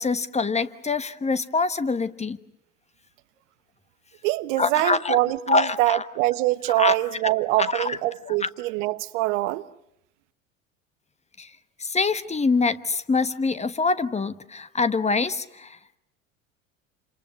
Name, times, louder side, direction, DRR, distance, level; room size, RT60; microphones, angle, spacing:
voice 1, 0.0-2.4 4.6-5.2 5.5-6.1 6.7-7.0 7.6-8.0 8.3-8.5 11.4-11.5 11.8-15.8, left 4 dB, 15° left, 1.2 m, -25 dB
voice 2, 4.2-9.6, right 18 dB, 65° right, 1.1 m, -24 dB
29.5 x 27.5 x 6.4 m
hypercardioid pair, 70°, 40 cm